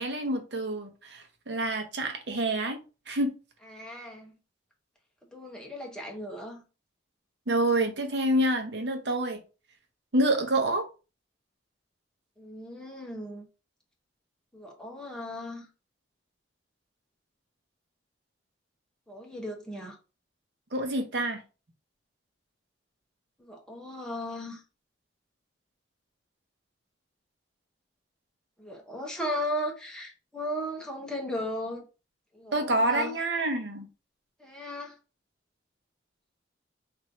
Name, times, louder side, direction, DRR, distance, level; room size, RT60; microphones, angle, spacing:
voice 1, 0.0-2.8 3.1-3.3 7.5-9.4 10.1-10.8 20.7-21.4 32.5-33.9, right 1 dB, 65° right, 0.8 m, -27 dB
voice 2, 3.6-4.3 5.3-6.6 12.4-13.5 14.5-15.7 19.1-20.0 23.4-24.6 28.6-31.8 32.3-33.2 34.4-35.0, equal, 5° left, 0.8 m, -36 dB
3.1 x 2.6 x 4.4 m
head